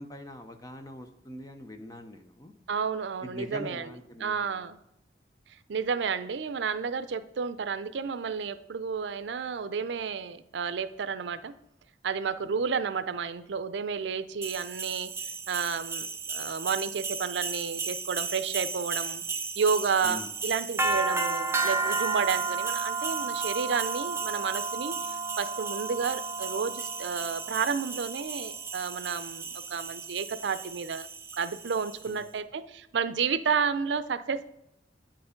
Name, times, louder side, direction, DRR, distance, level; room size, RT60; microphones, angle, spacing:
voice 1, 0.0-2.5 3.2-4.6 12.4-12.6 20.0-20.3 32.0-32.2, left 1 dB, 20° left, 7 dB, 0.7 m, -43 dB
voice 2, 2.7-3.9 4.2-4.8 5.7-11.5 12.0-15.1 15.5-19.2 19.6-24.9 25.4-31.1 31.4-34.5, right 6 dB, 80° right, 14 dB, 0.5 m, -31 dB
sound 1, 14.4-32.1, right 4 dB, 15° right, 0.5 m, -33 dB
9.0 x 4.8 x 5.1 m, 0.81 s
head